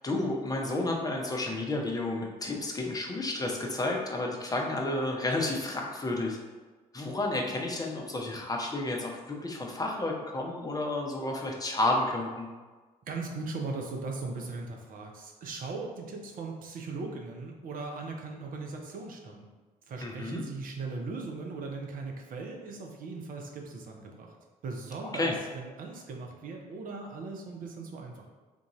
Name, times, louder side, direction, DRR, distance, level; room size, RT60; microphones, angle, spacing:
voice 1, 0.0-6.4 6.9-12.5 20.0-20.4 25.1-25.3, left 2 dB, 20° left, 0 dB, 0.7 m, -31 dB
voice 2, 13.1-19.5 19.9-24.4 24.6-28.3, right 3 dB, 45° right, 1 dB, 0.6 m, -39 dB
3.6 x 2.5 x 2.9 m, 1.3 s
figure-of-eight pair, 50°, 21 cm